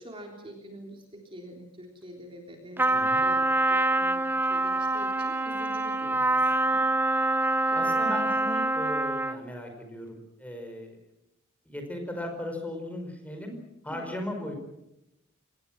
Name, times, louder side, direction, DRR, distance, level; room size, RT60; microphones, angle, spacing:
voice 1, 0.0-8.0 13.9-14.1, equal, 25° right, 2 dB, 3.5 m, -46 dB
Trumpet, 2.8-9.5, right 2 dB, 10° right, 0.8 m, -25 dB
voice 2, 2.9-3.2 7.7-11.0 11.6-13.5 13.8-14.5, left 1 dB, 5° left, 4 dB, 5.0 m, -37 dB
25.5 x 19.5 x 7.5 m, 0.88 s
head